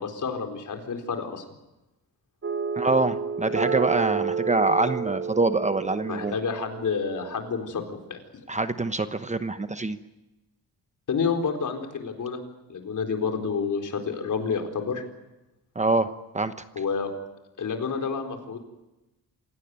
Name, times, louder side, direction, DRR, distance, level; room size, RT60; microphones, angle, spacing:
voice 1, 0.0-1.4 6.1-8.2 11.1-12.4 12.7-15.0 16.7-17.1 17.6-18.6, left 5 dB, 55° left, 4 dB, 4.2 m, -29 dB
sound 1, 2.4-7.5, right 6 dB, 40° right, 3.2 m, -30 dB
voice 2, 2.8-6.3 8.5-10.0 15.7-16.1 16.3-16.5, right 2 dB, 20° right, 10 dB, 1.0 m, -25 dB
27.0 x 17.5 x 9.6 m, 0.99 s
wide cardioid pair, 130°, 36 cm